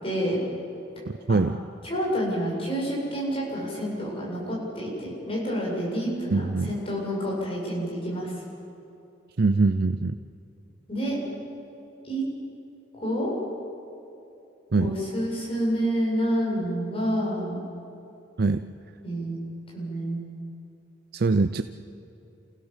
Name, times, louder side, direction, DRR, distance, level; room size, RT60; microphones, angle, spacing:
voice 1, 0.0-0.4 1.3-1.4 1.8-8.3 10.9-11.2 12.0-12.3 12.9-13.3 14.8-17.6 19.0-19.4 19.7-20.5, equal, 30° left, -4 dB, 7.7 m, -28 dB
voice 2, 6.3-6.7 9.4-10.2 14.7-14.9 18.4-18.7 21.1-21.6, right 3 dB, 55° right, 10 dB, 0.6 m, -23 dB
28.5 x 16.5 x 7.4 m, 2.9 s
head